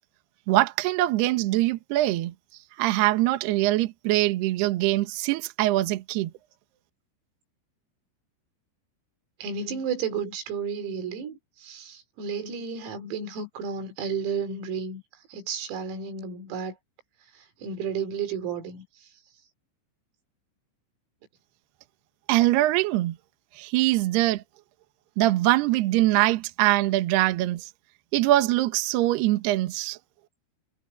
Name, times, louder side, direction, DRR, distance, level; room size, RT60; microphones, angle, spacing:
voice 1, 0.5-2.3 2.8-6.3 22.3-23.2 23.5-24.4 25.2-27.7 28.1-30.0, right 16 dB, 70° right, 2.7 m, -23 dB
voice 2, 9.4-15.0 15.3-16.8 17.4-19.1, right 6 dB, 85° right, 6.4 m, -32 dB
omnidirectional pair, 5.9 m